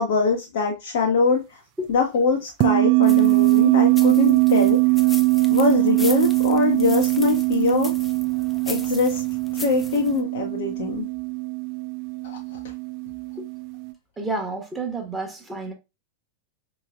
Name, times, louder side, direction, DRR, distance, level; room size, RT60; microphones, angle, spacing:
voice 1, 0.0-1.6 1.9-4.8 5.5-7.9 8.7-9.2 9.6-11.1 12.2-12.6, left 4 dB, 55° left, 0.7 m, -23 dB
sound 1, 2.6-13.9, right 27 dB, 40° right, 0.4 m, -21 dB
sound 2, 3.0-10.2, left 3 dB, 10° left, 0.5 m, -39 dB
voice 2, 14.2-15.7, right 2 dB, 10° right, 1.0 m, -30 dB
4.6 x 3.0 x 2.3 m
figure-of-eight pair, 90°, 0 cm